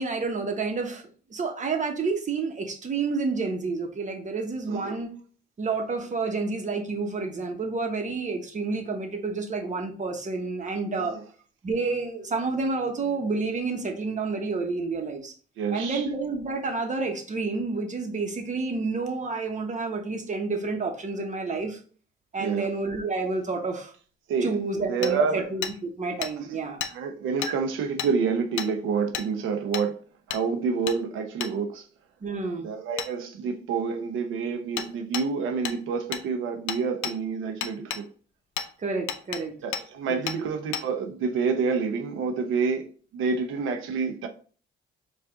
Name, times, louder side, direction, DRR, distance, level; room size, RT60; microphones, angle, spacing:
voice 1, 0.0-5.1 5.6-11.1 11.6-15.3 15.7-21.8 22.3-23.9 24.4-26.8 27.4-27.5 32.2-32.7 38.8-39.5 40.4-40.5, right 4 dB, 40° right, 1.1 m, -29 dB
voice 2, 4.7-5.0 11.0-11.2 15.6-16.0 22.4-22.7 24.3-24.5 24.9-25.4 26.5-26.6 26.9-30.0 30.3-31.9 32.6-38.1 39.6-42.9 43.1-44.3, right 5 dB, 85° right, 0.7 m, -28 dB
Hammer, 25.0-25.1 25.6-25.7 26.2-26.3 26.8-26.9 27.4-27.5 28.0-28.1 28.6-28.7 29.1-29.3 29.7-29.9 30.3-30.4 30.9-31.0 31.4-31.5 33.0-33.1 34.8-34.9 35.1-35.3 35.6-35.8 36.1-36.2 36.7-37.1 37.6-38.0 38.6-38.7 39.1-39.4 39.7-39.8 40.3-40.4 40.7-40.8, left 8 dB, 75° left, 0.5 m, -31 dB
4.8 x 2.5 x 3.7 m
cardioid pair, 90°, 20 cm